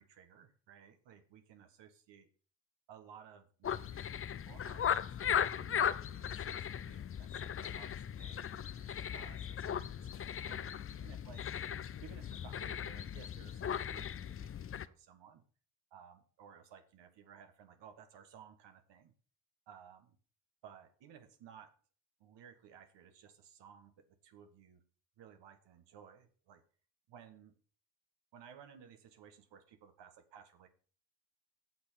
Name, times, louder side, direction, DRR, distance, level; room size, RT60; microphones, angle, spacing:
voice 1, 0.0-2.3 2.9-11.5 12.0-15.4 15.9-19.1 19.7-20.2 20.6-21.7 22.2-24.8 25.2-26.6 27.1-27.5 28.3-30.7, right 8 dB, 70° right, 7 dB, 1.4 m, -58 dB
sound 1, 3.6-14.9, left 8 dB, 30° left, 0.5 m, -38 dB
7.8 x 6.7 x 5.7 m, 0.41 s
supercardioid pair, 65°, 44 cm